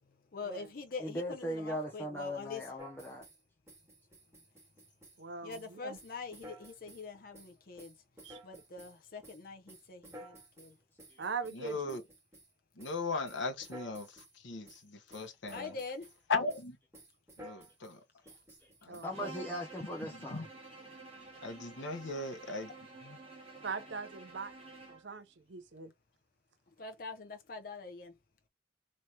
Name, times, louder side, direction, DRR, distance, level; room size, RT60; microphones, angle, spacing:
voice 1, 0.3-2.6 5.4-7.9 8.4-10.7 11.7-11.8 15.5-16.1 26.8-28.1, left 4 dB, 50° left, 0.6 m, -44 dB
voice 2, 1.0-3.2 11.1-11.2 18.6-18.7 19.0-20.4, equal, 10° left, 0.6 m, -39 dB
sound 1, 2.8-3.4 3.7-5.2 5.5-5.7 6.0-7.1 7.3-9.0 9.2-12.5 12.8-13.0 13.3-14.3 14.7-14.8 15.1-16.2 16.5-16.7 16.9-18.0 18.3-19.1, equal, 10° right, 2.0 m, -54 dB
voice 3, 5.2-6.0 8.2-8.4 11.2-12.0 18.9-19.3 23.6-24.5 24.9-25.9, right 5 dB, 70° right, 0.6 m, -41 dB
voice 4, 11.5-12.0 12.7-15.8 16.3-16.8 17.4-18.0 18.8-19.3 20.0-20.5 21.4-22.7 23.0-23.2, left 3 dB, 80° left, 0.9 m, -38 dB
Bowed string instrument, 19.1-25.1, right 2 dB, 30° right, 1.5 m, -51 dB
3.3 x 3.1 x 2.8 m
head